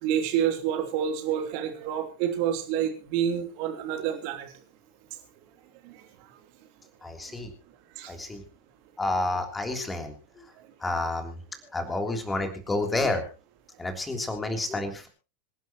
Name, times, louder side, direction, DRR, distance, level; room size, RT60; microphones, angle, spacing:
voice 1, 0.0-4.5 5.8-5.9 8.0-8.1, right 9 dB, 45° right, 5 dB, 3.3 m, -28 dB
voice 2, 7.0-7.5 8.1-8.4 9.0-10.1 10.8-11.4 11.7-13.2 13.8-15.1, left 2 dB, 10° left, 5 dB, 3.3 m, -29 dB
26.0 x 11.0 x 3.0 m, 0.32 s
figure-of-eight pair, 90°, 0 cm